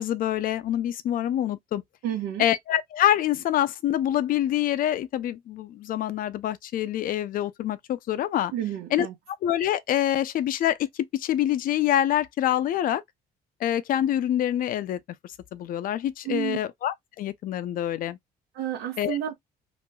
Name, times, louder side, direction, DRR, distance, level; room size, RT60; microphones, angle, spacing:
voice 1, 0.0-1.8 2.4-8.5 8.9-9.1 9.4-13.0 13.6-15.0 15.5-18.2 19.0-19.3, left 11 dB, 55° left, 0.4 m, -26 dB
voice 2, 2.0-2.4 8.5-9.1 16.2-16.6 18.5-19.3, right 11 dB, 85° right, 1.0 m, -30 dB
3.0 x 2.5 x 2.2 m
cardioid pair, 110°, 17 cm